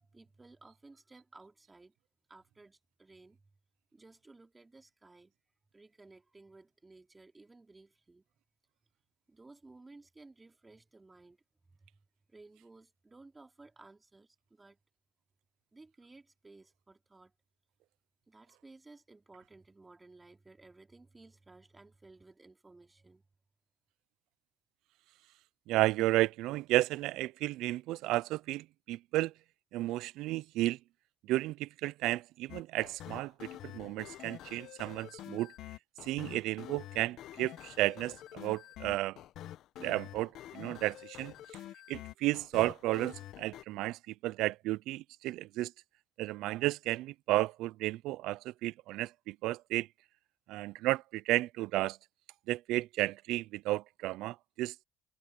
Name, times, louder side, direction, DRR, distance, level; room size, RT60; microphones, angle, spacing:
voice 1, 0.0-1.9 2.3-3.4 3.9-5.3 5.7-8.2 9.3-11.4 11.7-11.9 12.3-14.8 15.7-17.3 18.3-23.2, right 3 dB, 20° right, 3.6 m, -57 dB
voice 2, 25.7-29.3 29.7-30.8 31.3-35.5 36.0-39.2 39.8-41.3 41.9-45.7 46.2-49.9 50.5-52.0 52.5-54.7, right 17 dB, 80° right, 0.4 m, -33 dB
sound 1, 32.5-43.6, left 13 dB, 70° left, 1.1 m, -47 dB
cardioid pair, 90°, 0 cm